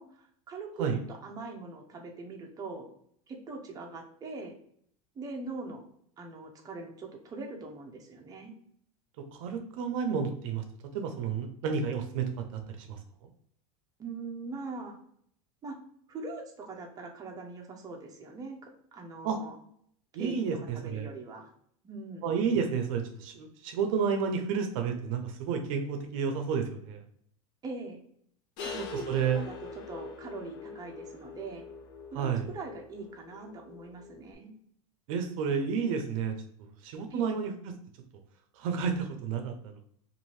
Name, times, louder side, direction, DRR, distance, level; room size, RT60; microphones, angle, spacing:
voice 1, 0.0-2.9 3.3-4.5 5.1-5.8 6.2-8.5 14.0-15.0 15.6-15.8 16.1-18.6 18.9-19.6 20.2-21.5 21.8-22.3 27.6-28.0 28.6-29.0 29.4-29.6 29.9-31.6 32.1-34.5 37.1-37.4, right 3 dB, 20° right, 1 dB, 0.6 m, -42 dB
voice 2, 9.2-10.6 10.9-13.3 19.2-19.4 20.1-21.1 22.2-27.0 29.1-29.4 32.1-32.4 35.1-37.5 38.5-39.8, right 6 dB, 70° right, 6 dB, 0.5 m, -31 dB
sound 1, 28.6-34.3, left 5 dB, 50° left, 0.6 m, -44 dB
2.6 x 2.5 x 3.0 m, 0.65 s
supercardioid pair, 120°, 18 cm